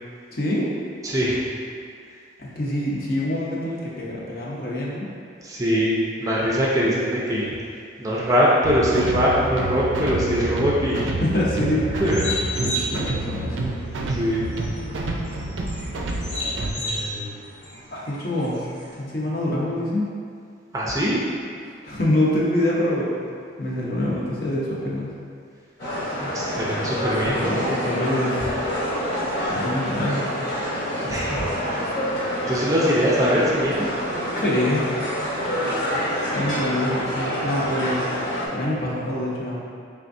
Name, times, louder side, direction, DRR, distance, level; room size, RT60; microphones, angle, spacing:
voice 1, 0.3-0.7 2.4-5.1 11.2-11.8 12.6-13.7 17.9-18.6 18.9-20.1 21.6-23.1 23.6-25.1 27.2-28.4 29.5-30.3 34.4-34.8 36.3-38.0 38.5-39.6, left 1 dB, 50° left, -5 dB, 0.7 m, -25 dB
voice 2, 1.0-1.4 5.4-7.5 8.0-11.1 12.0-12.2 14.0-14.5 16.8-17.4 20.7-21.2 26.2-27.5 31.0-31.4 32.5-33.9 37.8-37.9, equal, 20° right, -6 dB, 0.5 m, -22 dB
sound 1, 8.6-16.7, right 2 dB, 90° right, 0.4 m, -29 dB
sound 2, 11.6-19.0, equal, 90° left, 1.1 m, -34 dB
sound 3, 25.8-38.5, equal, 65° left, 1.1 m, -27 dB
4.4 x 3.5 x 2.6 m, 2.3 s
head